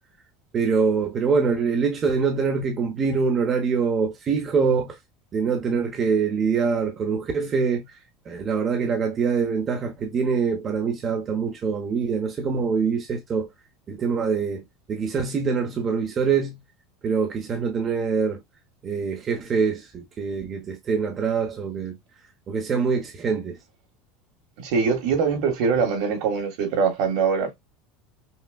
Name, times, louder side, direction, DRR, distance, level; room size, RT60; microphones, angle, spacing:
voice 1, 0.5-4.9 5.3-7.8 8.3-13.5 13.9-16.6 17.0-18.4 18.8-22.0 22.5-23.6, right 5 dB, 30° right, 0.9 m, -24 dB
voice 2, 24.6-27.5, right 5 dB, 65° right, 1.7 m, -23 dB
5.6 x 2.4 x 2.3 m
supercardioid pair, 140°, 0 cm